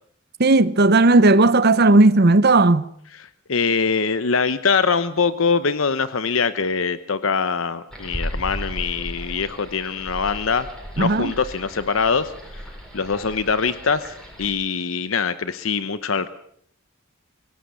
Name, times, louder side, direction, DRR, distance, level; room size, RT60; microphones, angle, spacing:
voice 1, 0.4-2.8 11.0-11.3, right 2 dB, 50° right, 0.9 m, -15 dB
voice 2, 3.2-10.7 11.0-12.3 12.9-16.3, left 5 dB, 75° left, 0.9 m, -23 dB
sound 1, 7.9-14.5, equal, 5° left, 6.6 m, -35 dB
24.0 x 17.5 x 7.0 m
head